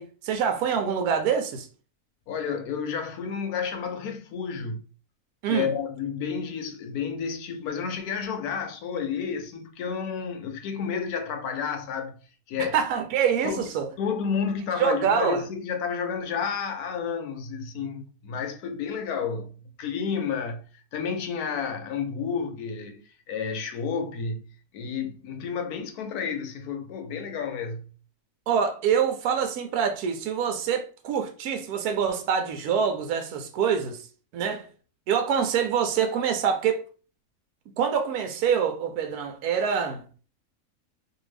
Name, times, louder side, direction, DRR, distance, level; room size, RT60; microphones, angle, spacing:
voice 1, 0.0-1.7 5.4-5.7 12.7-13.9 14.8-15.4 28.5-34.0 34.3-34.7 35.1-36.8 37.8-40.0, right 7 dB, 80° right, 1.1 m, -25 dB
voice 2, 2.3-4.8 5.4-12.2 12.5-12.8 13.4-13.7 14.0-19.5 19.8-20.6 20.9-23.0 23.3-24.4 24.7-27.9, left 6 dB, 80° left, 1.1 m, -31 dB
2.6 x 2.6 x 3.2 m
omnidirectional pair, 1.6 m